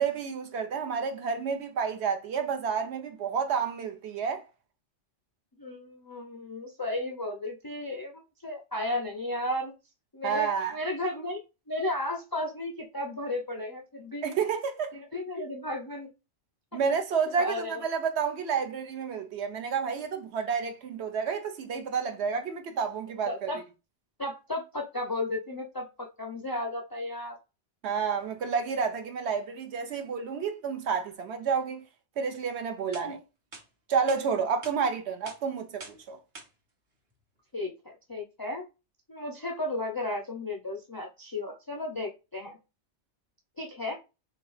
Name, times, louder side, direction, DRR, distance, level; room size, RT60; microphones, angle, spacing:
voice 1, 0.0-4.4 10.2-10.8 14.2-15.0 16.7-23.5 27.8-31.8 32.2-33.2 33.9-36.2, right 6 dB, 65° right, 0.9 m, -30 dB
voice 2, 5.6-9.7 10.1-11.4 11.7-14.2 14.9-16.1 17.4-17.8 23.3-23.6 24.2-25.9 26.2-27.3 33.0-33.2 37.5-38.7 39.1-42.6 43.6-43.9, left 1 dB, 35° left, 0.3 m, -34 dB
sound 1, 32.9-33.1 33.5-33.6 34.1-34.2 34.6-34.8 35.2-35.4 35.8-36.0 36.3-36.5, right 2 dB, 45° right, 1.1 m, -44 dB
3.5 x 2.8 x 3.1 m
omnidirectional pair, 1.2 m